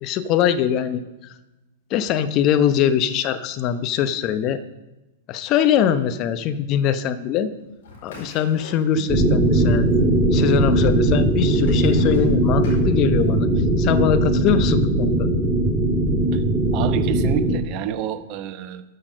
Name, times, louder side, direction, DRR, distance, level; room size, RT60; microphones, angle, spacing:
voice 1, 0.0-1.3 1.9-4.6 5.3-7.5 8.0-9.9 10.3-13.5 13.8-15.3, left 9 dB, 40° left, 10 dB, 0.8 m, -22 dB
sound 1, 7.8-9.3 9.5-10.3 10.9-13.4, left 1 dB, 60° left, 4.4 m, -39 dB
sound 2, 9.1-17.6, right 1 dB, 20° right, 1.8 m, -19 dB
voice 2, 16.7-18.8, right 9 dB, 40° right, 11 dB, 0.9 m, -28 dB
13.0 x 6.3 x 6.4 m, 1.1 s
figure-of-eight pair, 100°, 0 cm